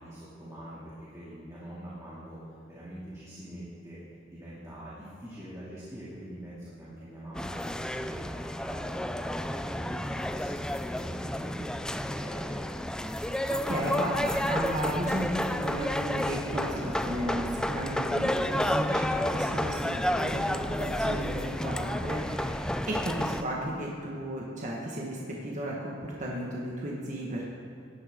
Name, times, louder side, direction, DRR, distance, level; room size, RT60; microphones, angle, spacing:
voice 1, 0.0-2.4 2.6-4.0 4.3-12.9, right 1 dB, 15° right, -9 dB, 2.6 m, -44 dB
sound 1, 7.3-23.4, left 1 dB, 5° left, 0.3 m, -31 dB
voice 2, 13.3-27.4, right 1 dB, 40° right, -3 dB, 1.6 m, -34 dB
17.5 x 12.5 x 3.8 m, 2.7 s
head